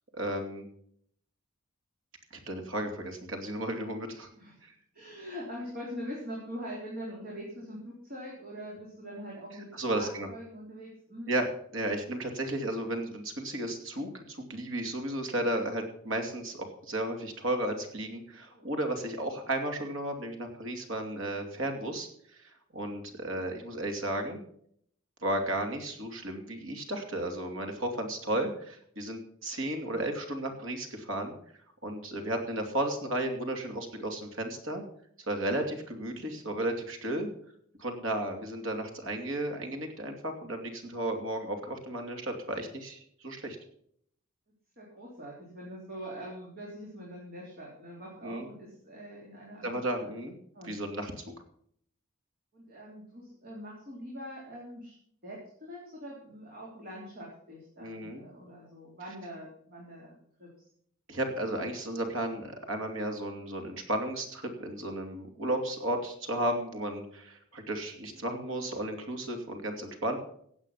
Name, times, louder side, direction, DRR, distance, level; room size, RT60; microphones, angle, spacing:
voice 1, 0.1-0.7 2.3-4.3 4.6-4.7 9.7-10.3 11.3-24.4 25.2-31.3 31.8-34.8 35.3-37.3 37.8-43.6 48.2-48.5 49.6-50.4 50.6-51.2 57.8-58.2 61.1-70.2, right 1 dB, 65° right, 4 dB, 2.7 m, -34 dB
voice 2, 4.3-4.7 4.9-11.3 18.5-18.7 29.8-30.1 36.1-36.4 44.8-50.1 50.5-50.8 52.5-54.9 55.2-60.5, equal, 45° right, -4 dB, 3.8 m, -43 dB
16.5 x 8.2 x 5.7 m, 0.65 s
head